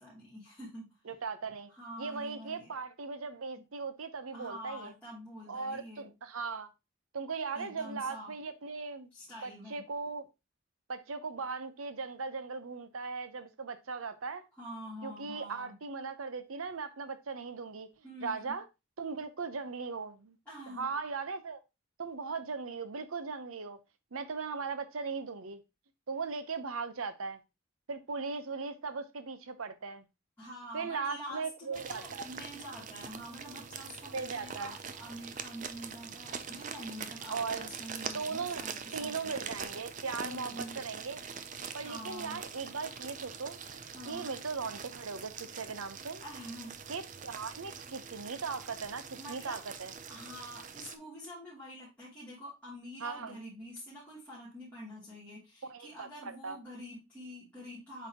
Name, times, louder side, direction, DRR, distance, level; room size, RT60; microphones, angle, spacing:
voice 1, 0.0-1.0 1.7-2.7 4.3-6.1 7.5-8.3 9.1-9.8 14.6-15.8 18.0-18.5 20.5-20.8 30.4-39.3 40.2-40.8 41.8-42.4 43.9-44.3 46.2-46.7 49.2-49.6 50.1-58.1, equal, 10° left, 2.9 m, -46 dB
voice 2, 1.1-1.7 2.0-4.9 5.5-6.7 7.1-9.1 9.4-10.3 10.9-14.4 15.0-17.9 18.2-18.6 19.0-20.4 20.7-21.6 22.0-23.8 24.1-25.6 26.1-27.4 27.9-30.0 30.7-32.3 34.1-34.7 37.3-37.7 38.1-38.6 38.9-41.2 41.7-46.2 46.9-49.9 53.0-53.4 55.6-56.6, right 4 dB, 85° right, 0.8 m, -38 dB
sound 1, 31.7-51.0, right 6 dB, 35° right, 0.5 m, -44 dB
8.1 x 4.1 x 2.9 m
head